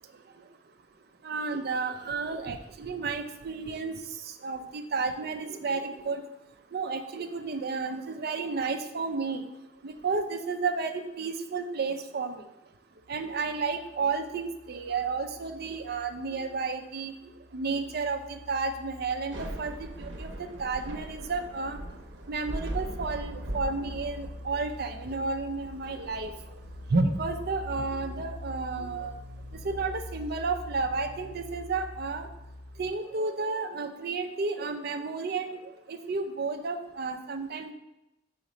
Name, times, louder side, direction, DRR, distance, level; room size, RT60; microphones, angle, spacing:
voice 1, 1.2-3.9 4.4-6.2 6.7-9.4 9.8-12.4 13.1-17.1 17.5-20.3 20.6-21.8 22.3-26.3 26.9-29.1 29.6-32.3 32.8-35.6 35.9-37.7, right 4 dB, 60° right, 7 dB, 0.6 m, -32 dB
sound 1, 13.0-16.8 17.1-32.9, left 1 dB, 50° left, 2.1 m, -45 dB
Thunder / Rain, 19.2-32.3, right 1 dB, 90° right, 0.8 m, -42 dB
5.0 x 4.2 x 5.0 m, 0.93 s
head